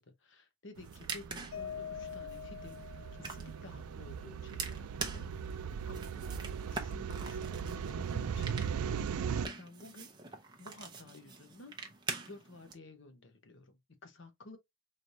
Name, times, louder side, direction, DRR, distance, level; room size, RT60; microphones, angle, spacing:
voice 1, 0.0-2.8 3.2-6.2 6.7-10.1 10.6-11.7 12.1-14.6, left 2 dB, 55° left, 0.9 m, -53 dB
sound 1, 0.7-12.7, right 4 dB, 20° right, 0.6 m, -45 dB
sound 2, 0.8-9.5, right 7 dB, 90° right, 0.4 m, -39 dB
Mallet percussion, 1.5-3.8, left 8 dB, 75° left, 0.4 m, -44 dB
4.0 x 3.3 x 2.6 m
head